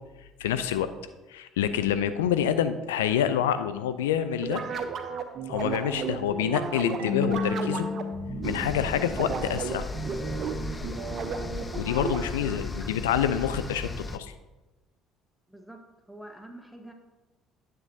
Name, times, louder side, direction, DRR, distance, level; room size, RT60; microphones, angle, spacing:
voice 1, 0.4-0.9 1.3-4.6 5.5-7.9 8.4-9.9 11.7-14.3, left 9 dB, 80° left, 11 dB, 0.3 m, -27 dB
sound 1, 4.4-12.5, right 5 dB, 50° right, 0.8 m, -33 dB
Marimba xylophone / Wood, 7.0-9.7, left 5 dB, 85° right, 0.9 m, -33 dB
sound 2, 8.4-14.2, left 3 dB, 25° left, 0.5 m, -36 dB
voice 2, 12.0-12.9 15.5-15.8 16.1-16.9, right 1 dB, ahead, 3 dB, 1.2 m, -46 dB
9.8 x 7.5 x 2.7 m, 1.1 s
hypercardioid pair, 55°, 0 cm